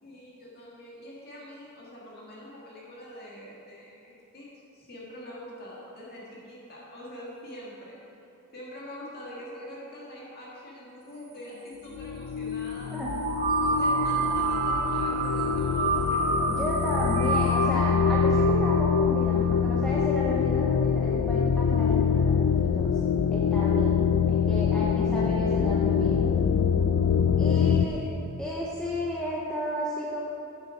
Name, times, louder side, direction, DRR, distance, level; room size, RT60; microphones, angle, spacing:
voice 1, 0.0-4.5 4.7-8.0 8.5-12.9 13.5-16.3 27.6-28.2, left 1 dB, 45° left, -5 dB, 1.9 m, -44 dB
sound 1, 11.9-27.9, left 7 dB, 90° left, 0.4 m, -24 dB
sound 2, 13.0-19.8, right 4 dB, 40° right, 0.8 m, -29 dB
voice 2, 16.5-23.0 23.3-24.0 24.3-26.3 27.4-28.1 28.4-30.2, equal, 5° left, -6 dB, 0.8 m, -33 dB
8.4 x 7.5 x 5.0 m, 2.8 s
head